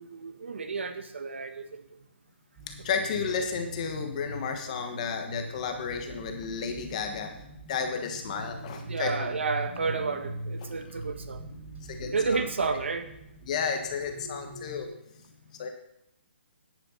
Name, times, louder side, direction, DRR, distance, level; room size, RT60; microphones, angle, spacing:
voice 1, 0.0-1.9 8.9-11.4 12.1-13.1, right 4 dB, 80° right, 8 dB, 1.5 m, -31 dB
sound 1, 2.6-14.9, right 1 dB, 20° right, 5.0 m, -42 dB
voice 2, 2.7-9.4 10.6-11.0 11.6-12.8 13.5-14.9 15.6-15.7, left 6 dB, 35° left, 5 dB, 1.4 m, -33 dB
9.9 x 9.6 x 5.6 m, 0.81 s
hypercardioid pair, 160°, 6 cm